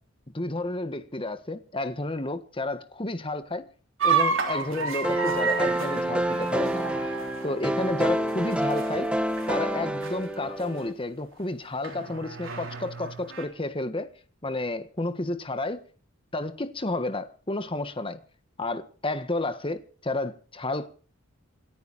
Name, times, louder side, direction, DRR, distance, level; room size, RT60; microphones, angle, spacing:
voice 1, 0.3-3.7 4.0-7.2 7.4-9.1 9.5-14.1 14.4-15.8 16.3-18.2 18.6-20.9, left 2 dB, 25° left, 1.5 m, -31 dB
sound 1, 4.0-9.1 9.4-9.7 10.0-10.2 10.8-10.9 11.8-13.4, right 5 dB, 85° right, 3.6 m, -30 dB
sound 2, 5.0-10.9, right 1 dB, 5° right, 1.1 m, -28 dB
27.5 x 9.6 x 4.2 m
head